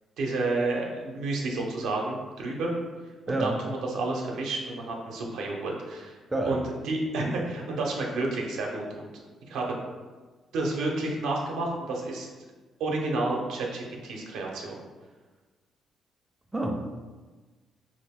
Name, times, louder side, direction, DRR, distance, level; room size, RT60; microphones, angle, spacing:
voice 1, 0.2-2.7 3.3-6.2 6.4-9.1 9.5-9.6 10.5-12.3 12.8-14.8, right 2 dB, 85° right, -1 dB, 0.6 m, -30 dB
voice 2, 3.3-3.6 6.3-6.6 16.5-16.9, right 1 dB, 15° right, 1 dB, 0.4 m, -28 dB
2.9 x 2.5 x 3.5 m, 1.3 s
cardioid pair, 90°, 0 cm